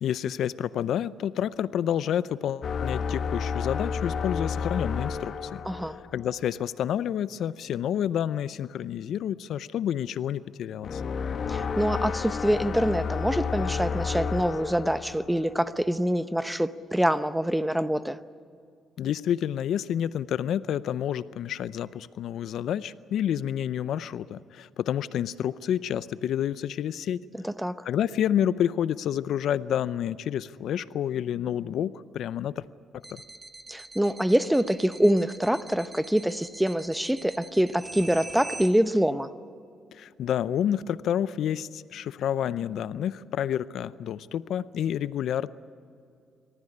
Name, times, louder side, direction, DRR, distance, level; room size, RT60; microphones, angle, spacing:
voice 1, 0.0-5.6 6.1-11.0 19.0-27.2 27.9-32.7 33.1-33.2 39.9-45.5, left 10 dB, 75° left, 17 dB, 0.5 m, -29 dB
sound 1, 2.6-6.4 10.8-15.7, left 5 dB, 50° left, 1.1 m, -31 dB
voice 2, 5.7-6.0 11.5-18.2 27.4-27.8 33.7-39.3, equal, 5° right, 13 dB, 0.8 m, -25 dB
sound 2, 33.0-38.7, right 2 dB, 25° right, 1.5 m, -43 dB
26.0 x 14.5 x 9.9 m, 2.4 s
cardioid pair, 90°, 0 cm